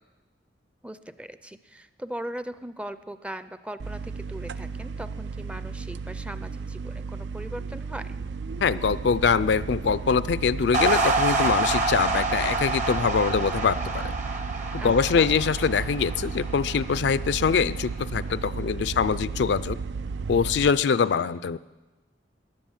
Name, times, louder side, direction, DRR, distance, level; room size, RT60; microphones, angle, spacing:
voice 1, 0.8-8.2 14.8-15.3, right 1 dB, 5° right, 12 dB, 0.5 m, -39 dB
sound 1, 3.8-20.7, right 4 dB, 75° right, 0.4 m, -34 dB
voice 2, 8.6-14.1 14.7-19.8 20.3-21.6, left 6 dB, 70° left, 15 dB, 0.4 m, -24 dB
sound 2, 10.7-17.2, right 3 dB, 45° right, 1.1 m, -27 dB
15.0 x 10.5 x 7.2 m, 1.2 s
head